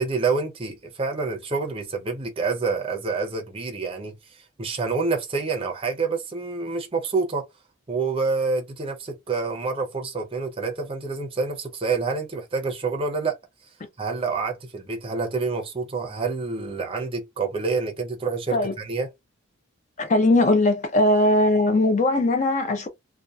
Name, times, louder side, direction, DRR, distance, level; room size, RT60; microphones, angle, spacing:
voice 1, 0.0-7.5 7.9-13.4 14.0-19.1, right 4 dB, 25° right, 0.5 m, -27 dB
voice 2, 20.0-22.9, left 1 dB, 35° left, 0.4 m, -20 dB
2.7 x 2.2 x 2.3 m
head